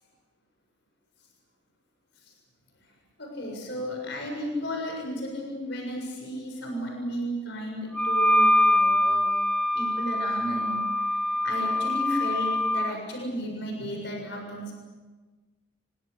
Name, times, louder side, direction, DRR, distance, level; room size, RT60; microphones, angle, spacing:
voice 1, 3.2-9.3 9.8-10.8 11.1-11.2 11.4-14.7, equal, 60° left, 1 dB, 7.1 m, -34 dB
Wind instrument woodwind instrument, 7.9-12.9, left 1 dB, 5° left, 1.2 m, -24 dB
27.5 x 24.5 x 6.7 m, 1.3 s
head